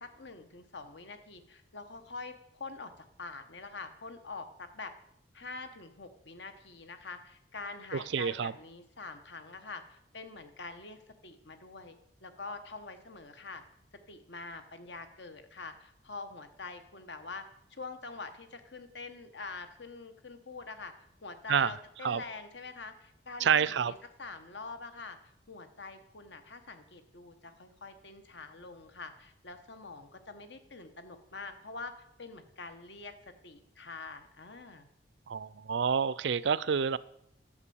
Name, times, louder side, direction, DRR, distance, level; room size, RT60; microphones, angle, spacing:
voice 1, 0.0-2.9 3.2-4.9 5.3-12.0 12.2-13.6 14.1-17.4 17.7-20.9 21.2-25.2 25.5-33.1 33.4-34.9, left 3 dB, 70° left, 8 dB, 1.3 m, -45 dB
voice 2, 7.9-8.5 21.5-21.7 22.0-22.2 23.4-23.9 35.3-37.0, right 7 dB, 70° right, 18 dB, 0.4 m, -28 dB
11.5 x 7.6 x 7.0 m, 0.76 s
head